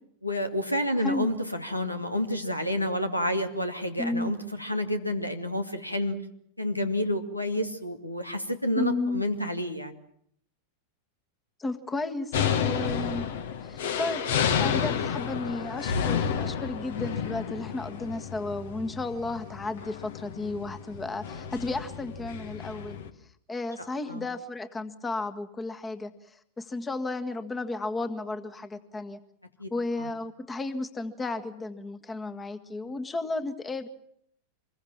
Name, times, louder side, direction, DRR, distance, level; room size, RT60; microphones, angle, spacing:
voice 1, 0.2-6.2 6.6-9.9 23.8-24.3 29.6-29.7 30.0-30.1, left 1 dB, 85° left, 7 dB, 2.4 m, -29 dB
voice 2, 4.0-4.3 8.7-9.2 11.6-12.3 12.6-13.3 13.6-14.2 14.6-23.0 23.5-26.1 26.6-29.2 29.7-33.9, left 2 dB, 15° left, 9 dB, 1.7 m, -33 dB
sound 1, 12.3-23.1, left 7 dB, 55° left, 1.9 m, -31 dB
26.0 x 22.0 x 7.5 m, 0.68 s
figure-of-eight pair, 90°, 0 cm